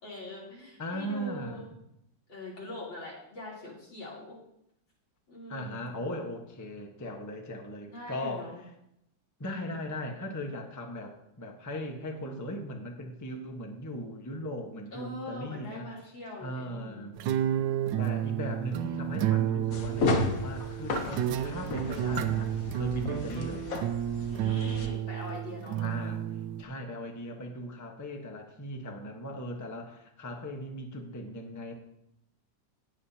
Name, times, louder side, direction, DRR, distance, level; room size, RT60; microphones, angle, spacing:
voice 1, 0.0-1.7 2.3-4.4 5.3-6.0 7.9-8.6 9.5-9.8 14.9-17.2 23.0-23.2 24.3-25.8, left 1 dB, 80° left, -5 dB, 4.1 m, -42 dB
voice 2, 0.8-1.8 5.5-8.5 9.4-15.9 16.4-17.2 18.0-23.7 25.8-26.2 26.6-31.7, equal, 10° left, 2 dB, 0.9 m, -38 dB
sound 1, 17.2-26.6, right 11 dB, 80° right, 1.3 m, -31 dB
sound 2, 19.7-24.9, left 3 dB, 55° left, 1.3 m, -33 dB
19.0 x 7.5 x 2.8 m, 0.80 s
omnidirectional pair, 2.0 m